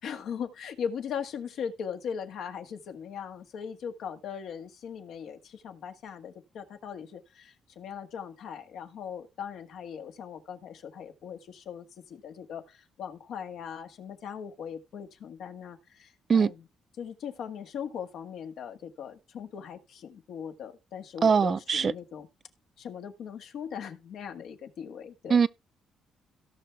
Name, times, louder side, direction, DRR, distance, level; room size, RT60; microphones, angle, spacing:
voice 1, 0.0-16.6 17.0-22.3 22.8-25.4, left 7 dB, 75° left, 1.6 m, -39 dB
voice 2, 21.2-21.9 25.3-25.5, right 6 dB, 45° right, 0.6 m, -22 dB
17.0 x 5.9 x 3.4 m
cardioid pair, 90°, 0 cm